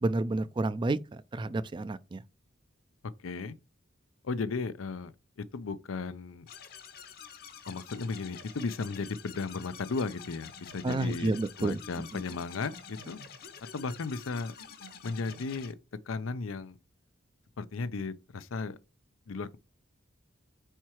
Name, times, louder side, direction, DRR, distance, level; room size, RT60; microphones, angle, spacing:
voice 1, 0.0-2.2 10.8-11.8 12.1-12.2, right 2 dB, 25° right, 0.3 m, -30 dB
voice 2, 3.2-3.6 4.2-5.1 5.5-6.5 7.7-11.3 11.6-13.2 13.7-14.5 15.0-15.8 16.1-16.8 17.6-18.8 19.3-19.6, left 4 dB, 85° left, 0.6 m, -35 dB
sound 1, 6.5-15.7, left 6 dB, 50° left, 0.9 m, -48 dB
4.7 x 4.5 x 4.4 m
head